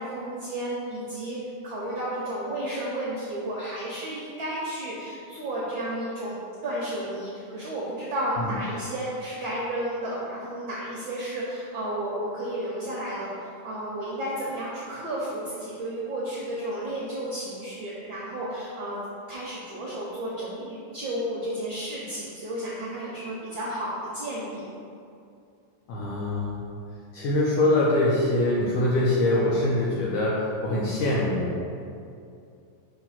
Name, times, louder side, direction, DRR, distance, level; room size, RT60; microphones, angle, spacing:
voice 1, 0.0-1.4 1.6-19.0 19.3-24.7, right 1 dB, 70° right, -7 dB, 1.1 m, -32 dB
voice 2, 25.9-26.6 27.1-31.5, left 1 dB, 75° left, -5 dB, 1.5 m, -24 dB
6.1 x 3.4 x 5.6 m, 2.5 s
omnidirectional pair, 3.4 m